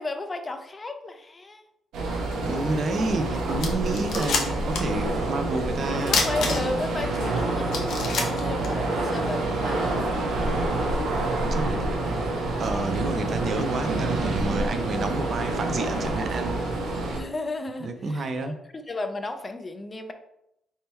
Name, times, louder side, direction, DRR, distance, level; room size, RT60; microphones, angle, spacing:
voice 1, 0.0-1.6 5.9-10.2 17.1-20.1, left 2 dB, 30° left, 7 dB, 0.5 m, -34 dB
sound 1, 1.9-17.2, right 2 dB, 85° right, 0.9 m, -27 dB
voice 2, 2.4-6.2 11.4-11.9 12.6-16.6 17.8-18.6, right 3 dB, 50° right, 7 dB, 0.5 m, -29 dB
sound 2, 3.2-3.3 3.6-5.0 5.2-5.3 6.1-6.9 7.4-7.5 7.7-9.2, left 4 dB, 70° left, 0.7 m, -27 dB
3.5 x 2.9 x 4.3 m, 0.81 s
cardioid pair, 90°, 0 cm